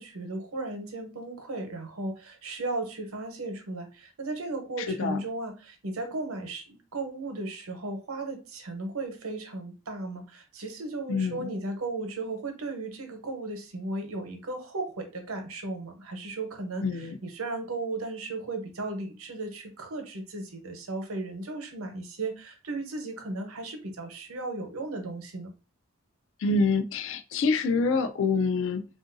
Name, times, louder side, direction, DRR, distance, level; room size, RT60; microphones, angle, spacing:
voice 1, 0.0-25.5, right 2 dB, 90° right, 0.8 m, -35 dB
voice 2, 4.8-5.2 11.1-11.5 16.8-17.2 26.4-28.9, left 4 dB, 60° left, 0.3 m, -26 dB
3.7 x 2.5 x 2.5 m
head